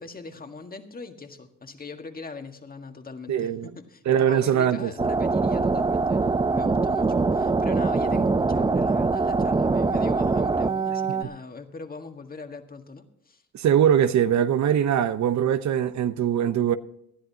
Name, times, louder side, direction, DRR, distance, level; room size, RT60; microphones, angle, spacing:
voice 1, 0.0-13.4, left 4 dB, 30° left, 1.7 m, -41 dB
voice 2, 3.3-3.7 4.1-4.9 13.5-16.8, right 9 dB, 70° right, 0.9 m, -22 dB
sound 1, 5.0-11.2, right 3 dB, 15° right, 0.6 m, -23 dB
19.5 x 12.5 x 2.8 m
cardioid pair, 90°, 30 cm